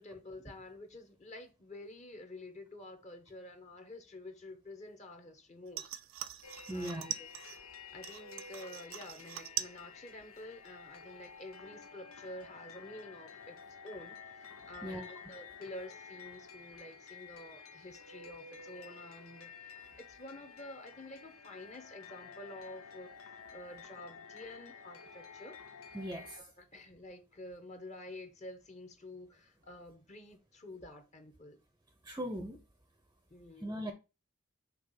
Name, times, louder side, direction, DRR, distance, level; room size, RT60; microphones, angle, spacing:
voice 1, 0.0-5.9 6.7-7.3 7.9-13.6 13.8-23.1 23.5-25.6 26.3-31.6 33.3-33.8, left 1 dB, 35° left, 1.1 m, -49 dB
sound 1, 5.7-7.6 8.0-9.8 10.1-10.7 11.1-11.2, right 12 dB, 70° right, 0.5 m, -42 dB
sound 2, 6.4-26.4, left 5 dB, 90° left, 0.9 m, -51 dB
voice 2, 6.7-7.1 14.8-15.1 25.9-26.4 32.0-32.6 33.6-33.9, equal, 10° right, 0.7 m, -38 dB
5.9 x 3.5 x 5.5 m
head